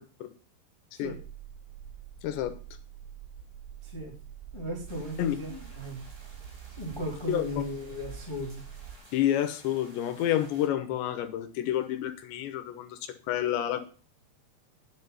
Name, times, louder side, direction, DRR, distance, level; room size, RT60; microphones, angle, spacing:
sound 1, 1.0-9.0, right 9 dB, 70° right, 3.5 m, -46 dB
voice 1, 2.2-2.5 5.2-5.4 7.3-7.4 9.1-13.8, left 11 dB, 75° left, 9 dB, 3.2 m, -29 dB
voice 2, 3.8-4.1 4.5-6.0 6.8-8.6, equal, 10° left, -2 dB, 1.9 m, -36 dB
sound 2, 4.9-10.7, right 2 dB, 30° right, 5.6 m, -55 dB
10.5 x 7.3 x 5.6 m, 0.38 s
omnidirectional pair, 5.5 m